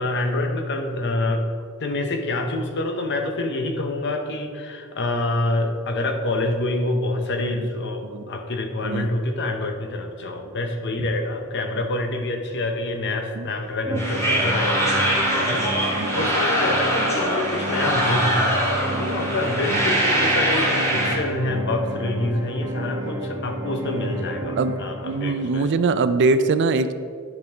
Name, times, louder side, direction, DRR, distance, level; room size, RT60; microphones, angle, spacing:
voice 1, 0.0-1.5 1.8-25.7, left 2 dB, 55° left, 5 dB, 0.8 m, -27 dB
sound 1, 13.8-25.8, right 1 dB, 20° right, 0.9 m, -31 dB
sound 2, 13.9-21.1, right 1 dB, 15° left, 2.2 m, -23 dB
voice 2, 16.0-16.3 18.9-19.0 19.7-19.8 24.6-24.8 25.0-26.9, right 3 dB, 55° right, 11 dB, 0.4 m, -23 dB
10.5 x 5.3 x 3.5 m, 2.2 s
head